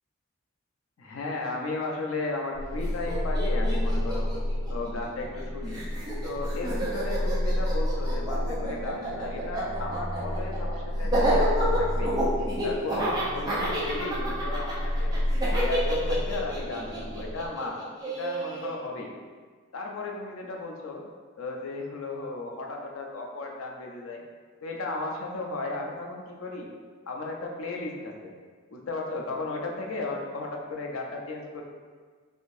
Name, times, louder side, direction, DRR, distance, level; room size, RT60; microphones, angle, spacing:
voice 1, 1.0-4.3 4.7-5.8 6.2-12.1 12.6-15.2 15.5-17.7 18.0-19.1 19.7-21.0 21.4-24.2 24.6-26.7 27.1-28.3 28.7-31.6, left 3 dB, 90° left, 0 dB, 0.5 m, -35 dB
sound 1, 2.5-17.5, left 1 dB, 90° right, 0.5 m, -30 dB
Laughter, 2.8-2.9 3.1-5.4 5.7-18.7, right 1 dB, 20° right, 0.6 m, -30 dB
3.6 x 2.6 x 2.6 m, 1.5 s
head